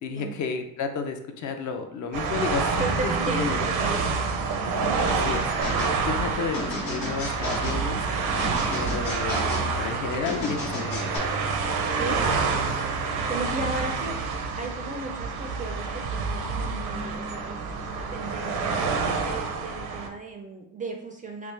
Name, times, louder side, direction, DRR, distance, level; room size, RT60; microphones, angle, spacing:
voice 1, 0.0-4.2 5.0-5.5 6.0-8.0 8.7-11.5, left 5 dB, 55° left, 6 dB, 0.5 m, -32 dB
sound 1, 2.1-20.1, right 4 dB, 85° right, 0.6 m, -28 dB
voice 2, 2.8-4.2 4.8-5.0 6.2-7.1 11.9-14.2 14.5-17.6 17.8-21.5, right 2 dB, 25° right, 3 dB, 0.3 m, -36 dB
sound 2, 5.6-6.0 6.5-7.8 8.4-9.7 10.2-11.2, left 2 dB, 80° left, 1.2 m, -33 dB
3.4 x 2.4 x 3.2 m, 0.74 s
cardioid pair, 105°, 37 cm